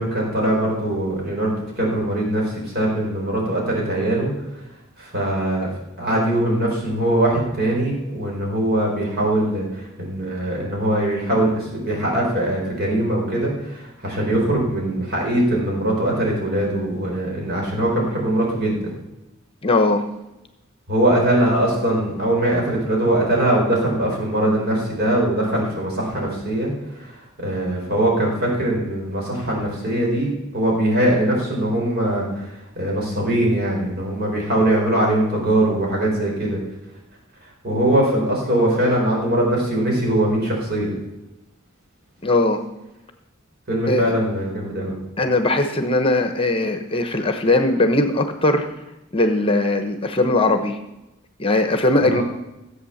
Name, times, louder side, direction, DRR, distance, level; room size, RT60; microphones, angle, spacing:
voice 1, 0.0-4.3 5.0-5.7 6.0-18.9 20.9-26.7 26.9-36.6 37.6-40.9 43.7-45.0 52.0-52.2, right 1 dB, 50° right, -2 dB, 4.9 m, -21 dB
voice 2, 19.6-20.0 42.2-42.6 43.9-44.1 45.2-48.7 49.1-50.8 51.4-52.2, left 2 dB, 25° left, 7 dB, 1.0 m, -19 dB
14.5 x 8.3 x 7.2 m, 0.97 s
head